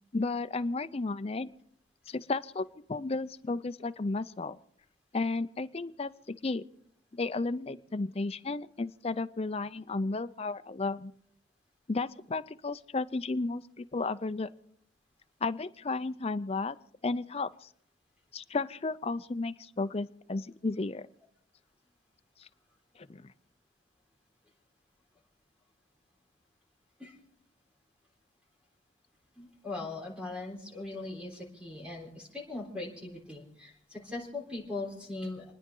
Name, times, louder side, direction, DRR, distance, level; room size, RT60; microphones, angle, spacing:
voice 1, 0.1-1.5 2.1-4.6 5.1-6.6 7.1-11.1 11.9-14.5 15.4-16.8 17.0-17.7 18.3-21.1 22.4-22.5 23.0-23.3, left 3 dB, 30° left, 12 dB, 0.5 m, -33 dB
voice 2, 29.4-35.4, left 2 dB, 5° right, -1 dB, 3.7 m, -40 dB
29.0 x 10.0 x 3.8 m, 0.71 s
head